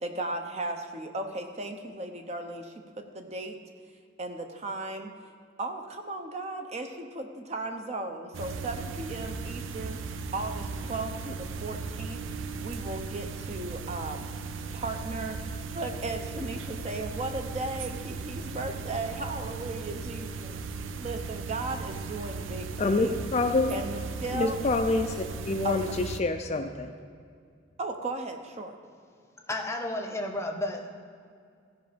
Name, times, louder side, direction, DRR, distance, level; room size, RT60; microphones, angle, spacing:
voice 1, 0.0-3.6 4.2-5.1 5.6-10.0 10.3-12.2 12.6-14.3 14.7-15.4 15.7-20.5 21.0-23.3 23.7-24.6 25.6-25.8 27.8-28.7, right 2 dB, 35° right, 5 dB, 0.7 m, -36 dB
sound 1, 8.3-26.2, right 4 dB, 80° right, 0.5 m, -37 dB
voice 2, 22.8-23.8 24.3-27.0, left 3 dB, 35° left, 6 dB, 0.4 m, -27 dB
voice 3, 29.5-30.9, left 1 dB, 15° left, 3 dB, 0.8 m, -32 dB
15.5 x 5.2 x 5.1 m, 2.3 s
head